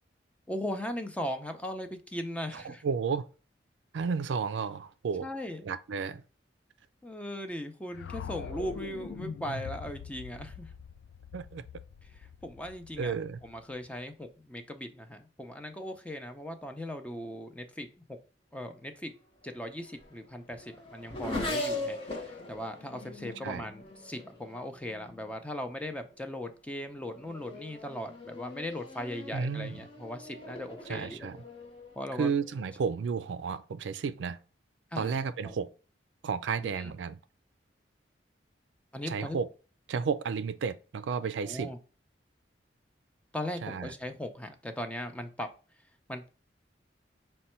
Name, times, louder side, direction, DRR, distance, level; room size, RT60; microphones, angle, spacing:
voice 1, 0.5-2.8 5.2-5.7 7.0-10.7 12.4-13.1 13.4-18.2 18.5-19.1 19.4-31.3 32.0-32.3 34.9-35.2 35.4-35.5 36.6-36.9 38.9-39.4 41.4-41.8 43.3-45.5 46.1-46.3, left 1 dB, 5° left, 0.5 m, -38 dB
voice 2, 2.5-3.3 3.9-5.3 5.6-6.2 11.3-11.6 13.0-13.4 23.4-23.7 29.3-29.8 30.9-31.4 32.2-34.4 35.0-35.7 36.2-37.2 39.1-39.5 39.9-41.7 43.6-43.9, right 5 dB, 80° right, 0.4 m, -32 dB
sound 1, 7.9-14.0, left 6 dB, 80° left, 0.3 m, -43 dB
Race car auto racing / Accelerating revving vroom, 19.4-25.3 26.1-26.5 26.9-32.8, left 2 dB, 30° left, 1.0 m, -41 dB
5.3 x 2.2 x 4.3 m
head